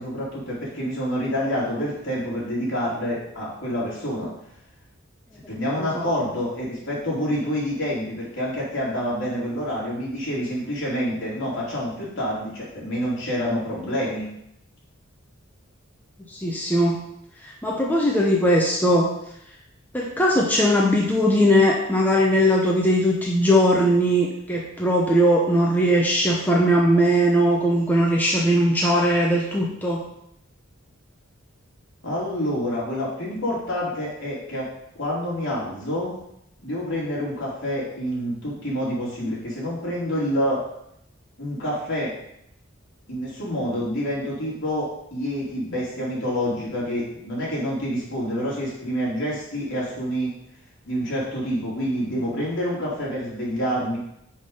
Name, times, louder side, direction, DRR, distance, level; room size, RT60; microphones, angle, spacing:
voice 1, 0.0-4.3 5.5-14.3 32.0-34.7 34.9-36.1 36.6-40.6 41.4-42.1 43.1-50.3 50.9-54.0, equal, 65° left, -6 dB, 3.2 m, -27 dB
voice 2, 16.3-17.0 17.4-19.1 19.9-30.0, equal, 10° left, -3 dB, 0.8 m, -20 dB
5.6 x 5.1 x 5.5 m, 0.77 s
head